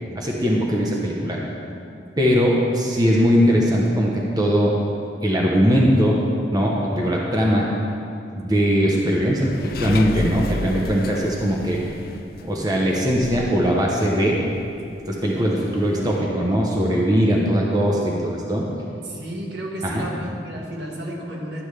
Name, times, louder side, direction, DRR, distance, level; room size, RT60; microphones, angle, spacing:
voice 1, 0.1-1.4 2.2-4.7 5.2-6.2 6.5-7.7 8.3-11.8 12.4-14.4 15.1-18.7 19.8-20.1, equal, 20° right, -3 dB, 0.8 m, -20 dB
sound 1, 9.0-13.6 14.0-14.1 14.4-14.6 14.9-15.0 15.9-16.2, left 2 dB, 55° left, 0.4 m, -32 dB
voice 2, 19.0-21.6, right 1 dB, 75° right, -2 dB, 1.4 m, -32 dB
12.0 x 7.0 x 3.2 m, 2.6 s
head